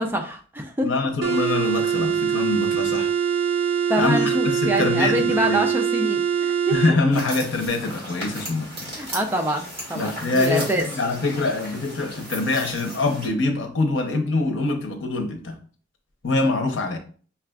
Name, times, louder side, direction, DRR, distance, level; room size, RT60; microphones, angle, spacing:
voice 1, 0.0-0.9 3.9-6.8 8.9-10.8, equal, 10° right, 0.3 m, -25 dB
voice 2, 0.8-3.1 4.0-5.6 6.7-8.9 9.9-10.7 10.9-15.5 16.2-17.0, left 3 dB, 85° left, 0.7 m, -24 dB
sound 1, 1.2-7.0, right 8 dB, 90° right, 0.4 m, -23 dB
sound 2, 7.1-13.3, equal, 30° right, 1.6 m, -36 dB
5.6 x 2.4 x 2.3 m
head